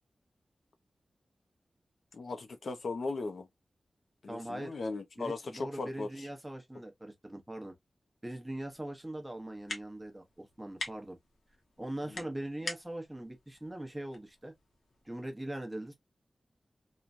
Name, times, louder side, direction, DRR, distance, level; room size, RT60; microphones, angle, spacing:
voice 1, 2.1-3.5 4.2-6.3 12.1-12.3, left 3 dB, 70° left, 0.6 m, -38 dB
voice 2, 4.3-4.7 5.2-7.7 8.2-11.2 11.8-14.5 15.0-15.9, right 1 dB, 15° right, 0.8 m, -41 dB
sound 1, 8.5-15.2, left 3 dB, 85° left, 1.0 m, -47 dB
3.1 x 2.2 x 2.5 m
wide cardioid pair, 125°, 0 cm